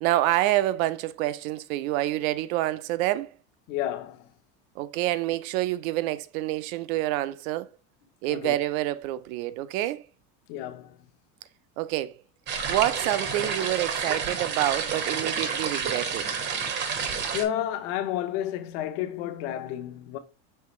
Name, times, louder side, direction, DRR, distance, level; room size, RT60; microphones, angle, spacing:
voice 1, 0.0-3.3 4.8-7.7 8.2-10.0 11.8-12.2 12.7-16.3, right 15 dB, 75° right, 0.5 m, -27 dB
voice 2, 3.7-4.3 8.3-8.5 10.5-11.0 16.8-16.9 17.3-20.2, left 11 dB, 60° left, 0.8 m, -31 dB
sound 1, 12.5-17.4, right 6 dB, 25° right, 0.6 m, -29 dB
5.6 x 3.2 x 2.9 m
cardioid pair, 160°, 42 cm